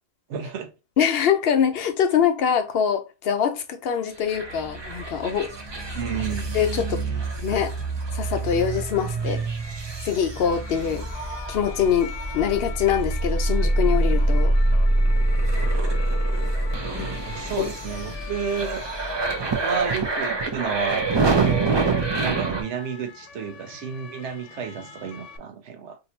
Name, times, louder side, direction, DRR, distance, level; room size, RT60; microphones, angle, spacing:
voice 1, 0.3-0.7 5.9-6.5 17.3-18.8 19.6-21.7 22.2-26.0, right 7 dB, 80° right, 1.0 m, -31 dB
voice 2, 1.0-6.0 6.5-7.0 7.4-7.8 8.1-9.4 10.0-14.5 17.0-17.1 17.6-17.7, left 8 dB, 65° left, 0.8 m, -24 dB
sound 1, 4.3-22.6, right 2 dB, 30° right, 0.5 m, -25 dB
sound 2, 10.3-25.4, left 8 dB, 90° left, 1.0 m, -43 dB
2.7 x 2.6 x 4.2 m
omnidirectional pair, 1.2 m